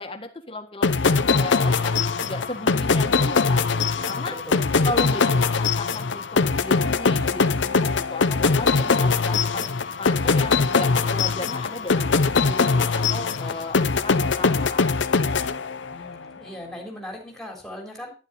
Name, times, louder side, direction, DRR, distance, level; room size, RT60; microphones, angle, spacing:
voice 1, 0.0-4.4 4.8-14.9, left 2 dB, 30° left, 5 dB, 1.6 m, -35 dB
sound 1, 0.8-16.1, left 4 dB, 80° left, 0.7 m, -22 dB
voice 2, 4.3-4.7 15.9-18.1, equal, 5° left, 0 dB, 3.6 m, -38 dB
11.5 x 10.0 x 4.2 m, 0.34 s
head